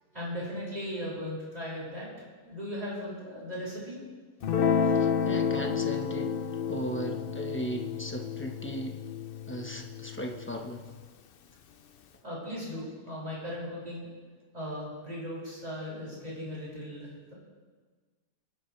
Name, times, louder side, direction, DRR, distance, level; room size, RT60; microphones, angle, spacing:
voice 1, 0.1-2.1 2.4-4.0 12.2-14.1 14.5-17.3, equal, 25° right, -7 dB, 5.9 m, -37 dB
Guitar, 4.4-11.0, left 6 dB, 65° left, 0.5 m, -30 dB
voice 2, 4.8-6.4 6.7-9.0 9.5-10.9, equal, 10° left, 2 dB, 0.9 m, -37 dB
23.0 x 12.5 x 3.3 m, 1.4 s
omnidirectional pair, 1.7 m